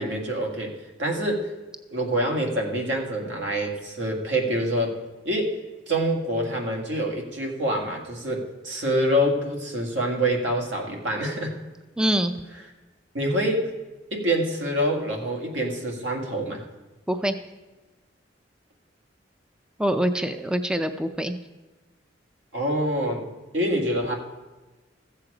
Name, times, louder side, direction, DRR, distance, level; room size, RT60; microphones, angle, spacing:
voice 1, 0.0-1.5 1.9-5.0 5.3-5.6 5.9-11.6 13.1-13.7 14.1-16.6 22.5-24.2, right 1 dB, 85° right, 1 dB, 2.0 m, -26 dB
voice 2, 12.0-12.3 17.1-17.4 19.8-21.4, right 1 dB, 5° right, 9 dB, 0.4 m, -24 dB
14.5 x 7.6 x 4.9 m, 1.2 s
head